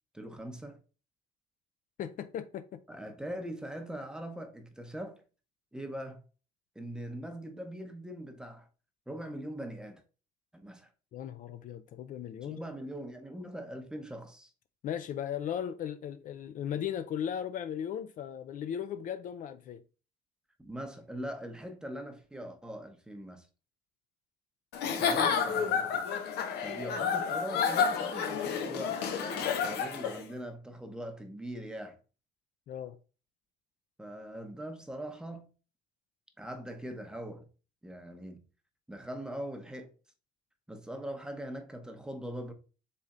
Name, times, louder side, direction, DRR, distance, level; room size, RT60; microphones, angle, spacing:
voice 1, 0.1-0.8 2.9-5.2 5.7-6.2 6.7-8.7 9.1-10.0 10.5-10.9 12.4-14.5 20.6-23.5 25.0-25.9 26.6-32.0 34.0-35.5 36.4-37.5 37.8-38.4 38.9-39.9 40.7-42.5, right 1 dB, 5° right, 0.8 m, -41 dB
voice 2, 2.0-2.8 11.1-12.6 14.8-19.8 25.7-25.8 32.7-33.0, left 9 dB, 50° left, 0.4 m, -37 dB
Giggle / Chuckle chortle, 24.7-30.2, left 6 dB, 75° left, 0.8 m, -30 dB
4.2 x 3.4 x 3.7 m
cardioid pair, 110°, 17 cm